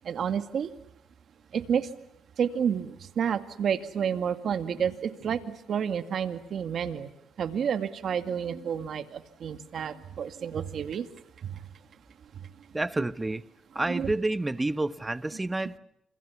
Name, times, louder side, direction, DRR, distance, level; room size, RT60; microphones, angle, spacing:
voice 1, 0.0-0.7 1.5-1.9 2.4-7.1 7.4-11.1 11.4-11.6 13.9-14.1, right 8 dB, 60° right, 2.1 m, -30 dB
voice 2, 12.7-13.4 13.7-15.8, right 2 dB, 15° right, 1.0 m, -29 dB
28.5 x 26.5 x 7.1 m
cardioid pair, 90°, 0 cm